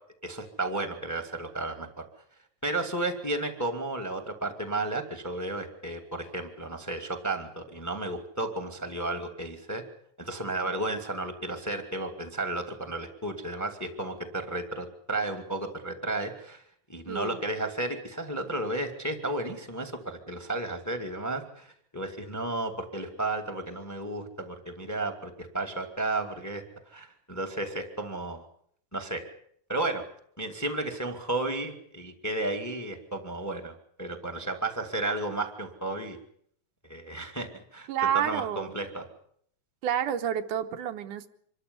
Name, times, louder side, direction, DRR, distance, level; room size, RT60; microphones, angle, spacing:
voice 1, 0.2-2.0 2.6-9.8 10.2-16.6 16.9-26.6 26.9-28.5 28.9-29.2 29.7-30.0 30.4-33.7 34.0-36.2 36.9-37.9 38.1-39.1, right 2 dB, 5° left, 8 dB, 1.9 m, -33 dB
voice 2, 17.1-17.4 37.9-38.8 39.8-41.3, right 10 dB, 80° right, 7 dB, 2.6 m, -29 dB
25.5 x 13.5 x 9.7 m, 0.66 s
omnidirectional pair, 3.6 m